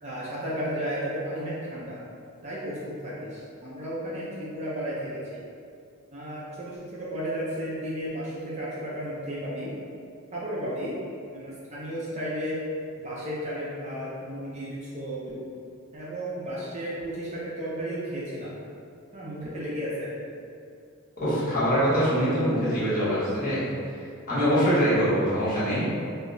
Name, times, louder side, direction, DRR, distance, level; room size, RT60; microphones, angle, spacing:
voice 1, 0.0-2.0 2.4-5.2 6.1-9.7 10.3-11.0 11.3-12.6 13.0-15.4 15.9-18.5 19.1-20.1, equal, 30° right, -7 dB, 0.5 m, -33 dB
voice 2, 21.2-23.6 24.3-25.8, equal, 40° left, -10 dB, 1.2 m, -23 dB
4.6 x 2.0 x 2.6 m, 2.4 s
head